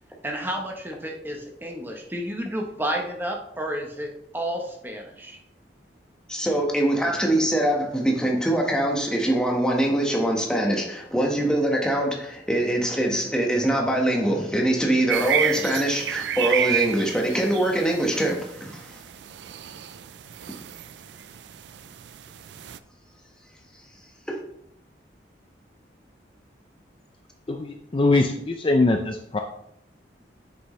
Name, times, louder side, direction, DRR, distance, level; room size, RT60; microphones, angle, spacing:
voice 1, 0.2-4.1 4.3-5.4, equal, 10° right, 1 dB, 0.9 m, -31 dB
voice 2, 6.3-19.0, right 1 dB, 5° left, -1 dB, 1.3 m, -23 dB
sound 1, 15.1-22.8, right 10 dB, 80° right, 0.4 m, -30 dB
voice 3, 27.5-29.4, left 2 dB, 30° left, 4 dB, 0.4 m, -22 dB
8.2 x 6.3 x 3.2 m, 0.75 s
head